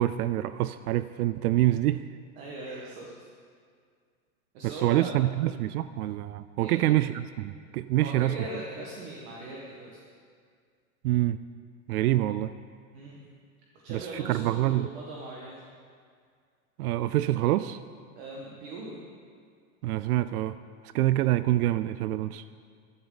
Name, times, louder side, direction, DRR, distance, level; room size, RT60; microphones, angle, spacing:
voice 1, 0.0-2.1 4.6-8.5 11.0-11.5 11.9-12.5 13.9-14.9 16.8-17.8 19.8-20.6 20.8-22.4, right 14 dB, 80° right, 14 dB, 0.5 m, -26 dB
voice 2, 2.4-3.1 4.5-5.2 6.6-6.8 8.0-9.9 12.9-13.2 13.8-15.6 18.2-19.0, right 2 dB, 40° right, -2 dB, 1.7 m, -40 dB
15.5 x 12.5 x 4.0 m, 2.1 s
supercardioid pair, 170°, 44 cm